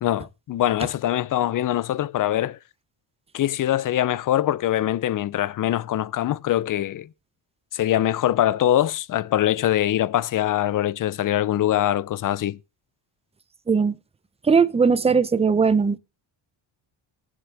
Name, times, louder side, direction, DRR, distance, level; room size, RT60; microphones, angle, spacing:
voice 1, 0.0-2.6 3.3-7.1 7.7-12.6, left 12 dB, 45° left, 0.5 m, -23 dB
voice 2, 14.4-16.0, right 5 dB, 15° right, 0.5 m, -19 dB
19.0 x 7.5 x 3.3 m
cardioid pair, 170°, 47 cm